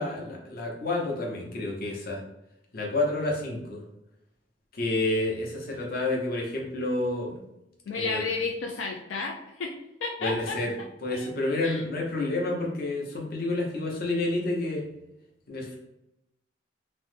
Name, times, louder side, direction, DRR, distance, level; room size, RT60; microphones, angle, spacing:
voice 1, 0.0-2.2 2.7-3.8 4.7-7.4 7.9-8.2 10.2-10.7 11.0-14.8 15.5-15.8, left 2 dB, 55° left, -1 dB, 0.8 m, -29 dB
voice 2, 7.9-11.3 11.6-11.8, left 4 dB, 90° left, 0 dB, 0.4 m, -33 dB
3.0 x 2.1 x 3.2 m, 0.88 s
head